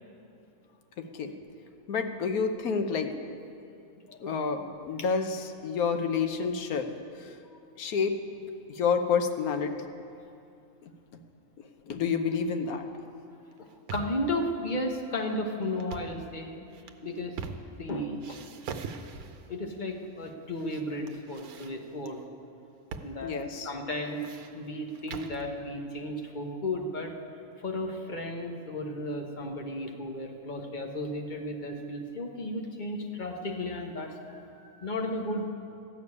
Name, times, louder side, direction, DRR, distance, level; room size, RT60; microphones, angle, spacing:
voice 1, 1.0-1.3 1.9-3.1 4.2-6.9 7.2-7.3 7.8-8.1 8.7-9.7 10.8-10.9 11.9-12.8 23.2-23.7, left 5 dB, 85° left, 6 dB, 1.3 m, -29 dB
sound 1, 13.5-14.3 15.7-16.2 16.7-17.9 18.2-19.5 20.2-20.8 21.1-22.1 22.9-23.1 23.4-23.5 23.9-25.4, right 5 dB, 90° right, 1.2 m, -41 dB
voice 2, 13.9-16.5 17.0-17.4 17.8-18.4 19.5-22.2 23.0-23.3 23.6-24.2 24.5-27.1 27.6-35.5, left 1 dB, 35° left, 2 dB, 1.1 m, -34 dB
14.0 x 6.9 x 9.6 m, 2.6 s
omnidirectional pair, 1.5 m